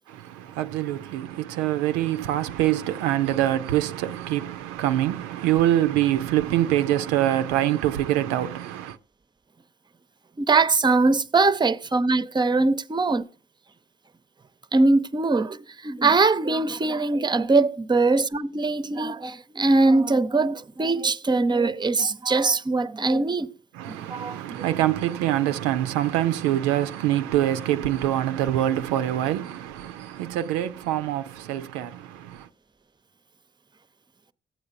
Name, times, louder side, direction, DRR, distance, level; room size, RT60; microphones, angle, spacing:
voice 1, 0.1-9.0 23.7-32.5, right 13 dB, 85° right, 0.4 m, -25 dB
voice 2, 10.4-13.3 14.7-23.5 23.9-24.4, right 3 dB, 20° right, 0.6 m, -22 dB
14.5 x 8.6 x 2.6 m
hypercardioid pair, 45°, 21 cm